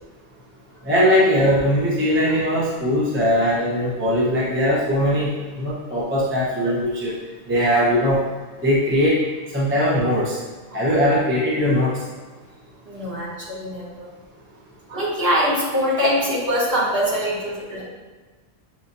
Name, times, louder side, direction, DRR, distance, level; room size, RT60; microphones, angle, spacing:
voice 1, 0.8-7.1 7.5-8.2 8.6-9.2 9.5-10.4 10.7-12.0, equal, 10° right, -7 dB, 0.7 m, -20 dB
voice 2, 12.9-14.1 14.9-17.8, equal, 50° right, -9 dB, 1.8 m, -23 dB
7.2 x 2.6 x 2.6 m, 1.3 s
omnidirectional pair, 1.3 m